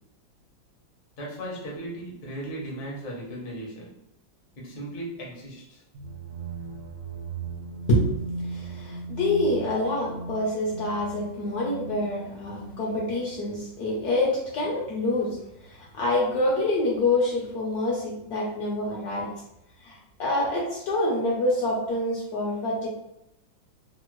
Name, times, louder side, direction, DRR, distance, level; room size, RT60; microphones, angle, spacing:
voice 1, 1.2-3.9 4.6-5.8, right 1 dB, 45° left, -4 dB, 0.6 m, -37 dB
sound 1, 5.9-13.6, right 3 dB, 70° right, 1.3 m, -38 dB
voice 2, 7.9-8.2 8.5-15.4 15.7-19.3 19.8-22.9, left 1 dB, 65° left, -4 dB, 1.0 m, -26 dB
3.4 x 2.0 x 3.0 m, 0.83 s
omnidirectional pair, 2.1 m